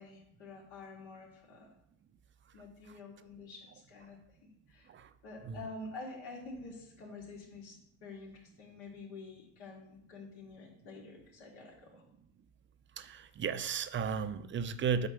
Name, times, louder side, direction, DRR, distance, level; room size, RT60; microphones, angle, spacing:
voice 1, 0.0-1.7 2.5-4.9 5.2-12.0, left 3 dB, 75° left, -2 dB, 3.1 m, -48 dB
voice 2, 13.0-15.1, right 6 dB, 30° right, 11 dB, 0.6 m, -34 dB
8.7 x 4.1 x 6.6 m, 0.74 s
supercardioid pair, 100°, 40 cm